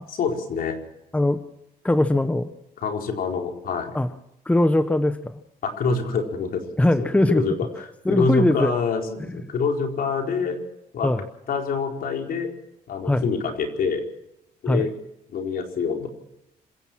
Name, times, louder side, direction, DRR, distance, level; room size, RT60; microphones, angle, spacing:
voice 1, 0.1-0.8 2.8-3.9 5.6-6.6 7.0-7.1 7.3-7.7 8.1-10.6 10.9-11.1 11.5-12.5 12.9-14.0 14.6-14.9 15.3-16.1, left 4 dB, 65° left, 2 dB, 4.6 m, -25 dB
voice 2, 1.8-2.5 3.9-4.1 4.4-5.4 6.8-7.4 8.0-8.7 9.3-9.4 11.0-11.2 13.0-13.3 14.7-14.9, left 1 dB, 10° left, 10 dB, 1.1 m, -21 dB
26.0 x 16.0 x 6.2 m, 0.84 s
cardioid pair, 120°, 16 cm